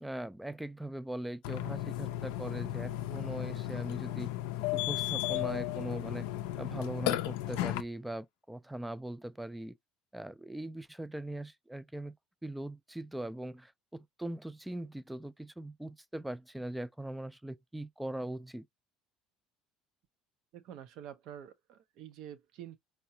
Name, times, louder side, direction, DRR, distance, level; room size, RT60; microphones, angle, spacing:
voice 1, 0.0-4.3 4.7-6.3 6.6-9.8 10.1-12.2 12.4-18.7, right 1 dB, 5° right, 0.3 m, -40 dB
Burping eructation, 1.4-7.8, left 15 dB, 80° left, 0.4 m, -34 dB
voice 2, 20.5-22.8, right 10 dB, 65° right, 0.6 m, -47 dB
4.6 x 2.1 x 2.7 m
supercardioid pair, 90°, 0 cm